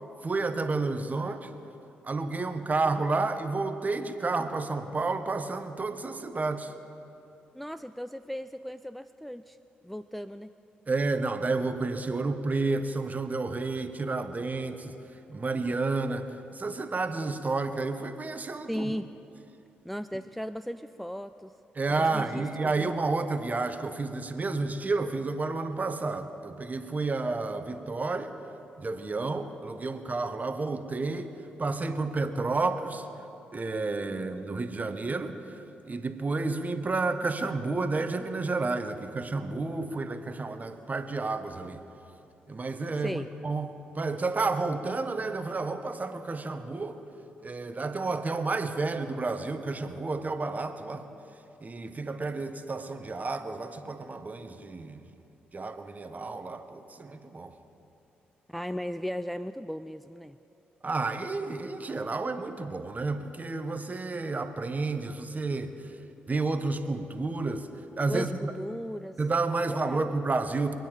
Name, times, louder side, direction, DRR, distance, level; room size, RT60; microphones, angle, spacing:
voice 1, 0.2-1.5 2.0-6.7 10.9-18.9 21.7-28.3 28.8-31.3 31.6-33.1 33.5-41.8 42.5-47.0 47.4-51.1 51.6-55.0 55.5-57.5 60.8-66.0 66.3-67.7 68.0-68.5 69.2-70.7, right 3 dB, 35° right, 8 dB, 1.3 m, -31 dB
voice 2, 7.5-9.6 9.8-10.5 18.7-19.1 19.8-21.5 22.0-22.9 43.0-43.3 58.5-60.4 68.1-69.2 69.7-70.1, equal, ahead, 11 dB, 0.4 m, -36 dB
23.5 x 9.4 x 5.2 m, 2.9 s
hypercardioid pair, 45°, 5 cm